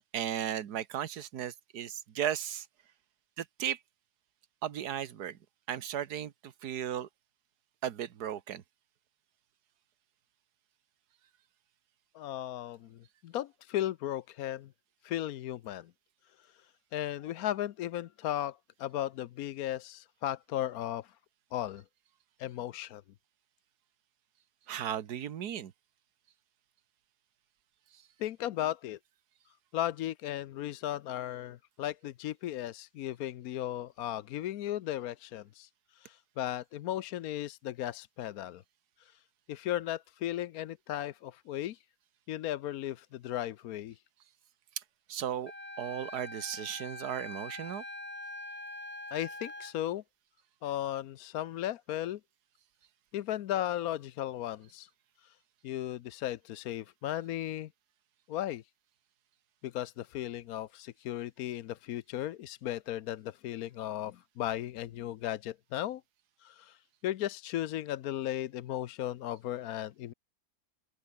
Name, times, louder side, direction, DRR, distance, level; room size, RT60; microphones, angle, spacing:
voice 1, 0.1-2.7 3.4-3.8 4.6-5.4 5.7-7.1 7.8-8.6 24.7-25.7 45.1-45.5 45.8-47.8, right 10 dB, 80° right, 1.7 m, -35 dB
voice 2, 12.1-14.7 15.0-15.9 16.4-16.6 16.9-21.2 21.5-21.8 22.4-23.0 28.2-29.0 29.7-38.6 39.0-39.2 39.5-41.8 42.3-44.0 49.1-50.0 50.6-52.2 53.1-54.9 55.2-55.4 55.6-57.7 58.3-58.6 59.6-66.0 66.4-70.1, left 12 dB, 70° left, 1.1 m, -36 dB
Wind instrument woodwind instrument, 45.5-49.7, left 1 dB, 10° left, 0.7 m, -43 dB
open air
omnidirectional pair, 1.7 m